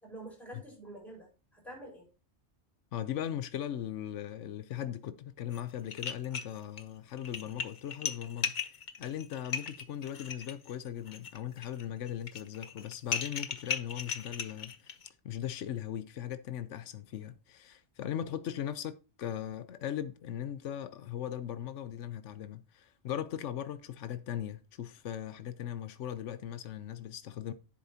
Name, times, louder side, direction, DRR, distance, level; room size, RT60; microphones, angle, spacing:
voice 1, 0.0-2.1, right 1 dB, ahead, 4.9 m, -47 dB
voice 2, 2.9-15.0 15.2-27.5, left 10 dB, 85° left, 1.1 m, -39 dB
sound 1, 5.5-5.6 5.9-6.8 7.2-15.1, left 6 dB, 45° left, 0.8 m, -37 dB
10.5 x 7.7 x 2.8 m
omnidirectional pair, 1.2 m